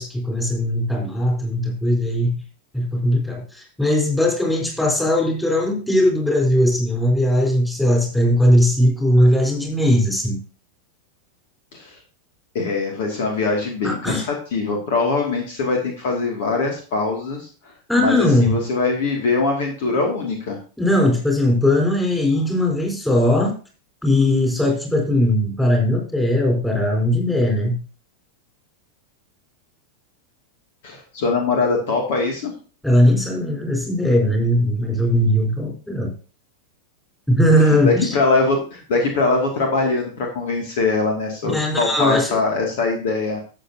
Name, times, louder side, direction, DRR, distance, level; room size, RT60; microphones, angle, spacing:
voice 1, 0.0-2.4 2.7-10.4 13.8-14.3 17.9-18.6 20.8-23.5 24.0-27.8 32.8-36.1 37.3-38.2 41.4-42.4, left 1 dB, 5° left, 0 dB, 4.3 m, -19 dB
voice 2, 12.5-20.6 30.8-32.5 37.8-43.4, left 3 dB, 50° left, 1 dB, 2.4 m, -22 dB
13.0 x 7.8 x 2.9 m, 0.37 s
figure-of-eight pair, 90°, 0 cm